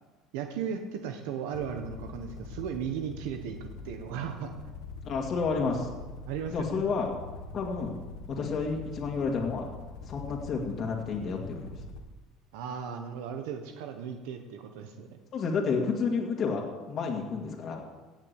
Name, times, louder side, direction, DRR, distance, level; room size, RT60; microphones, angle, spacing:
voice 1, 0.3-4.5 6.3-6.8 10.3-10.4 12.5-15.1, right 7 dB, 85° right, 5 dB, 1.3 m, -36 dB
sound 1, 1.5-12.1, left 4 dB, 90° left, 1.6 m, -44 dB
voice 2, 5.0-5.9 6.5-7.1 7.5-8.0 8.3-9.7 10.1-11.7 15.3-17.8, left 5 dB, 40° left, 0 dB, 2.1 m, -30 dB
17.5 x 6.5 x 8.3 m, 1.2 s
cardioid pair, 140°, 0 cm